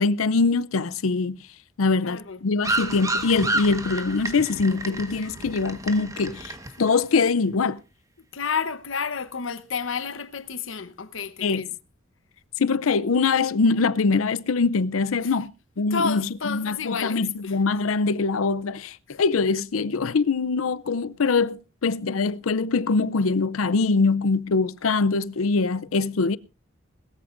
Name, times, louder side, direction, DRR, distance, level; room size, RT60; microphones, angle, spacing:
voice 1, 0.0-1.4 1.8-6.5 6.8-7.8 11.4-11.7 12.6-15.5 15.8-26.4, left 4 dB, 90° left, 0.6 m, -23 dB
voice 2, 2.0-2.4 8.3-11.7 15.2-15.3 15.9-17.5, left 5 dB, 65° left, 1.0 m, -30 dB
Dschungel Sarmat, 2.6-7.0, right 2 dB, 15° right, 1.3 m, -30 dB
20.5 x 14.0 x 2.6 m
head